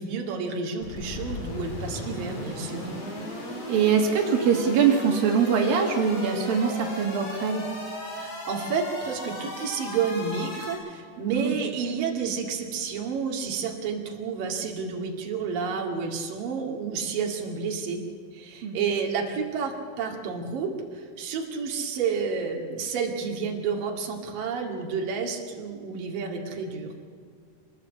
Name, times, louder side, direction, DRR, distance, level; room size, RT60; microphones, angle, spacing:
voice 1, 0.0-2.9 5.9-6.0 8.2-18.0 18.3-26.9, right 5 dB, 75° right, 0 dB, 3.9 m, -30 dB
sound 1, 0.8-10.7, left 1 dB, 50° left, 7.1 m, -36 dB
voice 2, 3.7-7.7 11.3-11.6 18.6-18.8, right 6 dB, 90° right, 2 dB, 3.9 m, -23 dB
25.0 x 19.5 x 8.3 m, 2.1 s
omnidirectional pair, 4.0 m